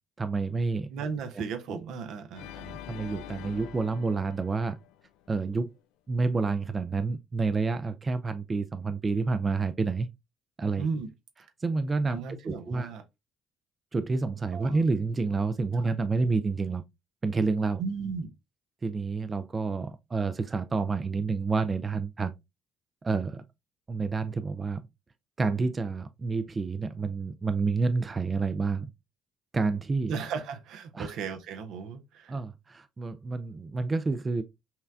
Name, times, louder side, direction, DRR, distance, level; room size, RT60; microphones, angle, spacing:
voice 1, 0.2-0.9 1.7-1.8 2.5-4.8 5.3-5.7 6.1-10.1 10.6-10.9 11.6-12.9 13.9-16.8 17.2-17.8 18.8-22.4 23.0-23.4 23.9-24.8 25.4-28.9 29.5-30.1 30.9-31.1 32.3-34.4, right 4 dB, 30° right, 0.4 m, -29 dB
voice 2, 0.9-2.5 10.8-11.1 12.1-13.0 14.5-14.8 17.8-18.3 30.1-32.4, right 5 dB, 75° right, 0.6 m, -35 dB
Organ, 2.3-5.5, left 11 dB, 80° left, 0.3 m, -45 dB
5.6 x 2.2 x 2.4 m
supercardioid pair, 65°, 0 cm